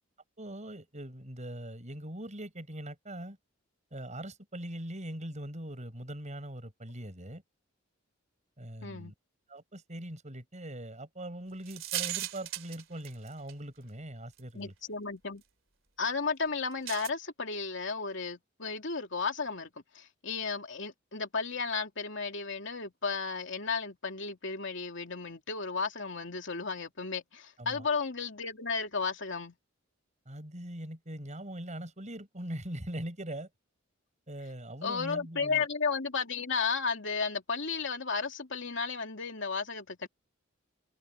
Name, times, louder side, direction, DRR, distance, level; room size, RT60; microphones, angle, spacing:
voice 1, 0.4-3.4 3.9-7.4 8.6-9.1 9.5-14.7 27.6-27.9 30.2-33.5 34.3-35.7, right 1 dB, 35° right, 6.7 m, -41 dB
voice 2, 8.8-9.1 14.5-15.4 16.0-19.7 19.9-29.5 34.8-40.1, left 5 dB, 65° left, 2.9 m, -34 dB
sound 1, 11.7-13.5 14.4-14.5 16.9-17.1, right 13 dB, 75° right, 3.5 m, -36 dB
head